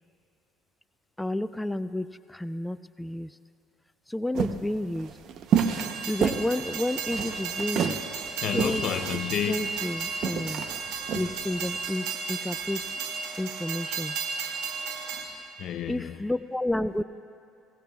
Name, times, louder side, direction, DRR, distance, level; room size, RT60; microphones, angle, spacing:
voice 1, 1.2-3.4 4.1-5.1 6.0-8.0 8.5-8.8 9.5-10.6 11.1-12.8 13.4-14.2 15.9-17.0, left 1 dB, 5° left, 0.3 m, -31 dB
sound 1, 4.3-11.8, right 7 dB, 60° right, 0.8 m, -30 dB
Train, 5.5-15.3, right 5 dB, 75° right, 1.5 m, -34 dB
voice 2, 8.4-9.8 14.8-15.2 15.6-16.2, left 10 dB, 60° left, 0.5 m, -31 dB
22.0 x 17.0 x 2.3 m
supercardioid pair, 80°, 0 cm